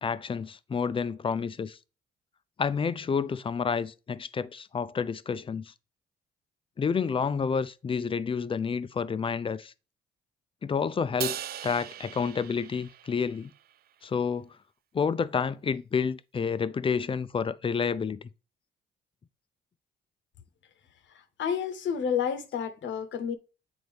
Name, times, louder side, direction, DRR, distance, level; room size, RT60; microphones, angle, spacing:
voice 1, 0.0-1.8 2.6-5.7 6.8-9.7 10.6-11.4 11.6-13.5 14.0-14.5 14.9-18.2, left 6 dB, 25° left, 0.4 m, -29 dB
Crash cymbal, 11.2-13.6, right 10 dB, 50° right, 0.4 m, -38 dB
voice 2, 21.4-23.3, left 7 dB, 70° left, 0.8 m, -30 dB
7.9 x 4.0 x 3.3 m
cardioid pair, 90°, 20 cm